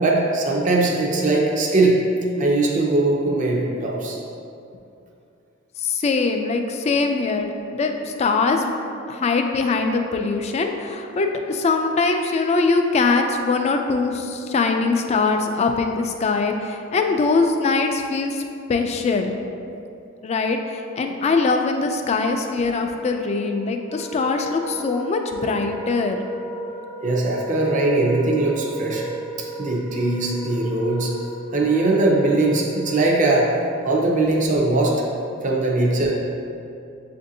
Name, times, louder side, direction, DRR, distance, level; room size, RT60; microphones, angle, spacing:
voice 1, 0.0-2.0 2.4-4.2 27.0-29.1 29.6-31.1 31.5-33.5 33.8-35.0 35.4-36.1, right 2 dB, 40° right, -2 dB, 0.5 m, -20 dB
voice 2, 5.8-8.7 9.1-18.4 18.7-19.3 20.2-26.2, left 4 dB, 35° left, 4 dB, 0.3 m, -22 dB
Wind instrument woodwind instrument, 23.8-33.9, right 1 dB, 70° right, 0.7 m, -35 dB
7.5 x 2.6 x 2.7 m, 2.6 s
head